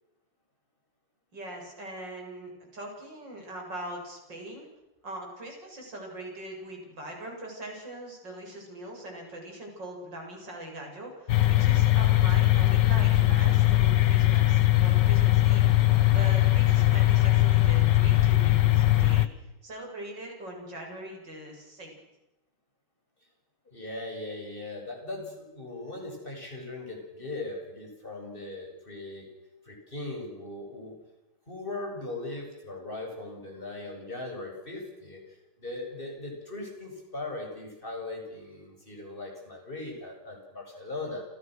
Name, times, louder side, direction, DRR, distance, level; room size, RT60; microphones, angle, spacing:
voice 1, 1.3-4.7 5.0-15.7 16.1-19.3 19.6-21.9, right 1 dB, 65° right, 1 dB, 8.5 m, -41 dB
sound 1, 11.3-19.3, left 15 dB, 65° left, 1.7 m, -21 dB
voice 2, 23.7-29.3 29.7-31.0 31.5-41.3, left 2 dB, 25° left, 2 dB, 7.8 m, -39 dB
30.0 x 28.5 x 6.5 m, 0.97 s
omnidirectional pair, 2.1 m